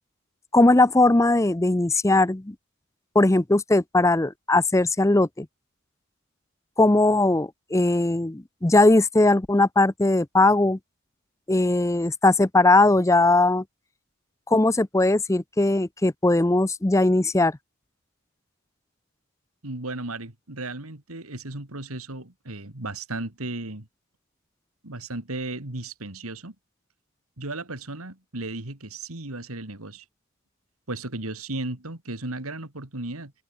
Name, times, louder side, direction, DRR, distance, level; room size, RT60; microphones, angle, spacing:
voice 1, 0.5-2.5 3.1-5.5 6.8-10.8 11.5-13.6 14.5-17.6, left 2 dB, 15° left, 0.5 m, -19 dB
voice 2, 19.6-23.9 24.8-26.5 27.4-30.0 30.9-33.3, right 2 dB, 80° right, 3.0 m, -35 dB
head